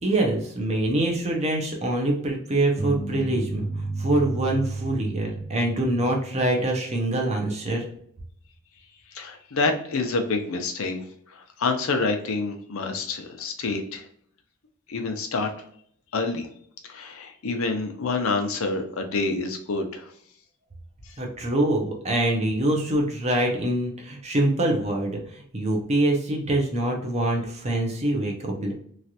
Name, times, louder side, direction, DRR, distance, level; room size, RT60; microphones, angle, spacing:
voice 1, 0.0-7.9 21.2-28.7, right 1 dB, 30° right, 1 dB, 0.7 m, -25 dB
sound 1, 2.8-7.0, right 2 dB, 10° right, 0.3 m, -33 dB
voice 2, 9.1-11.0 11.3-14.0 14.9-15.5 16.1-16.5 16.8-20.1, left 3 dB, 75° left, 4 dB, 0.6 m, -27 dB
3.1 x 2.4 x 2.7 m, 0.65 s
head